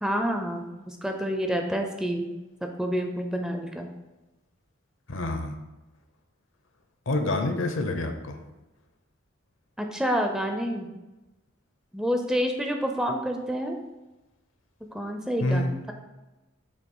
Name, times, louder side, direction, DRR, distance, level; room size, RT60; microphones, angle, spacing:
voice 1, 0.0-2.3 2.8-3.9 9.8-10.9 11.9-13.8 14.9-15.9, equal, 5° right, 3 dB, 0.4 m, -28 dB
voice 2, 5.1-5.6 7.1-8.4 15.4-15.7, left 2 dB, 70° left, 6 dB, 0.8 m, -27 dB
6.8 x 2.7 x 5.4 m, 1.1 s
head